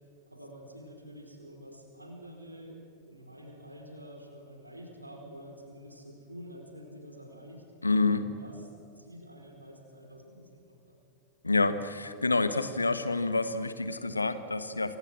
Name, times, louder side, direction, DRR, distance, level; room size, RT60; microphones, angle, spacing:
voice 1, 0.3-2.8 3.1-7.6 8.2-8.6 9.0-11.0, equal, 85° right, 3 dB, 4.7 m, -48 dB
voice 2, 7.8-8.3 11.4-15.0, left 3 dB, 80° left, 11 dB, 1.4 m, -28 dB
29.0 x 24.5 x 6.3 m, 2.5 s
figure-of-eight pair, 90°, 0 cm